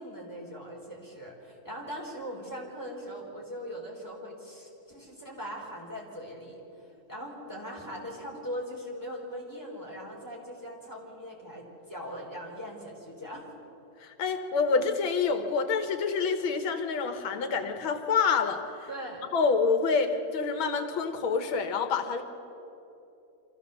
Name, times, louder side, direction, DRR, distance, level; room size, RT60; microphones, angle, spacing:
voice 1, 0.0-13.5 18.9-19.2, equal, 10° left, -3 dB, 3.8 m, -40 dB
voice 2, 14.0-18.6 19.3-22.2, left 5 dB, 85° left, 7 dB, 2.0 m, -27 dB
26.0 x 15.0 x 6.9 m, 2.9 s
omnidirectional pair, 2.2 m